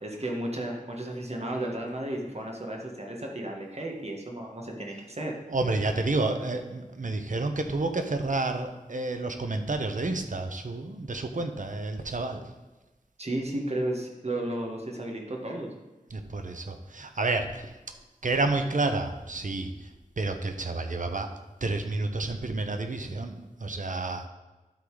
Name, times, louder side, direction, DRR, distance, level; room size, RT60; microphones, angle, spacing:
voice 1, 0.0-5.3 13.2-15.7, right 1 dB, 45° right, 1 dB, 1.6 m, -33 dB
voice 2, 5.5-12.4 16.1-17.7 18.2-19.7 20.2-21.3 21.6-24.2, right 2 dB, 65° right, 6 dB, 0.9 m, -30 dB
11.5 x 4.0 x 4.8 m, 1.1 s
wide cardioid pair, 60°, 15 cm